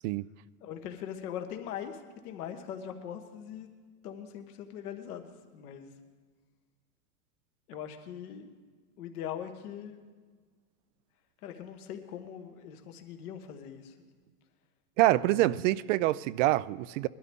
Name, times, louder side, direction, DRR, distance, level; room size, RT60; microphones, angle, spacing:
voice 1, 0.6-3.7 4.0-5.9 7.7-8.5 9.0-10.0 11.4-13.9 15.1-15.6, left 9 dB, 65° left, 1.6 m, -41 dB
voice 2, 15.0-17.1, right 16 dB, 55° right, 0.5 m, -26 dB
21.0 x 12.5 x 3.6 m
hypercardioid pair, 105°, 47 cm